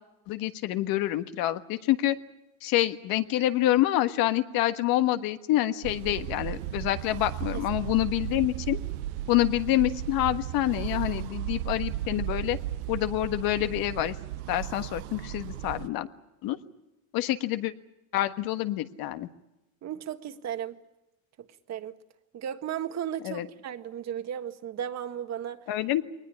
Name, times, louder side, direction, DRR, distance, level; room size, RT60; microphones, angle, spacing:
voice 1, 0.3-2.2 2.6-8.8 9.3-12.6 12.9-14.1 14.5-16.1 16.4-16.6 17.1-17.7 18.1-19.3 23.2-23.5 25.7-26.0, left 14 dB, 60° left, 10 dB, 1.5 m, -27 dB
sound 1, 5.8-15.9, right 14 dB, 75° right, 0.9 m, -35 dB
voice 2, 19.8-20.8 21.7-21.9 22.3-25.6, right 9 dB, 40° right, 9 dB, 1.7 m, -35 dB
22.0 x 19.5 x 10.0 m, 0.97 s
supercardioid pair, 115°, 41 cm